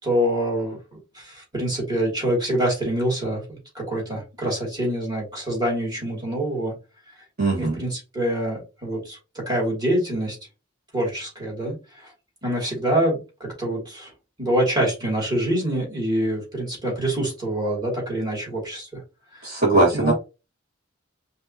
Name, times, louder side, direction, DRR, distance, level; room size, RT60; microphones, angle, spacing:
voice 1, 0.0-6.8 7.6-10.4 10.9-11.7 12.4-14.1 14.4-19.0 19.7-20.1, right 1 dB, 20° right, -3 dB, 2.5 m, -25 dB
voice 2, 7.4-7.8 19.4-20.1, right 2 dB, 45° right, -4 dB, 1.7 m, -20 dB
5.3 x 2.8 x 2.8 m, 0.29 s
head